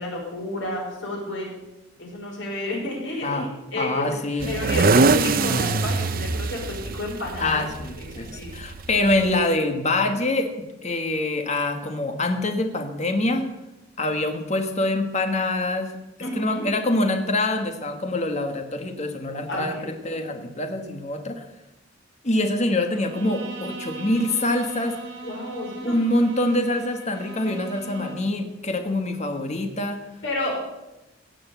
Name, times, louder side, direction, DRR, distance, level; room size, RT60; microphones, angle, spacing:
voice 1, 0.0-1.5 2.0-4.2 4.4-7.6 8.0-8.5 16.2-16.7 19.5-20.2 25.2-25.9 30.2-30.5, left 1 dB, 80° left, -1 dB, 5.3 m, -31 dB
voice 2, 3.7-4.5 7.4-10.5 10.8-13.5 14.0-15.9 16.3-21.4 22.2-25.0 25.8-30.0, left 2 dB, 40° left, 6 dB, 1.4 m, -25 dB
sound 1, 4.4-9.4, right 3 dB, 50° right, 0.6 m, -23 dB
Bowed string instrument, 22.9-28.4, right 3 dB, 75° right, 2.1 m, -39 dB
17.0 x 7.0 x 8.0 m, 0.99 s
head